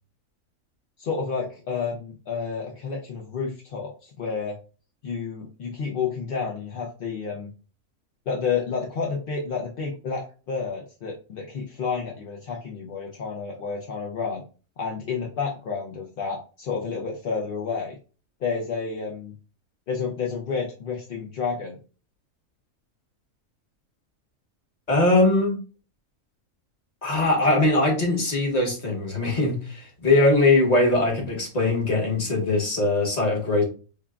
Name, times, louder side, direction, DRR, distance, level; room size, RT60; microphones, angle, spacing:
voice 1, 1.0-4.6 5.0-7.5 8.3-14.4 14.8-18.0 18.4-19.3 19.9-21.8, left 5 dB, 55° left, -2 dB, 0.6 m, -30 dB
voice 2, 24.9-25.6 27.0-33.6, left 2 dB, 35° left, -1 dB, 1.1 m, -21 dB
5.6 x 2.2 x 2.3 m, 0.37 s
omnidirectional pair, 1.4 m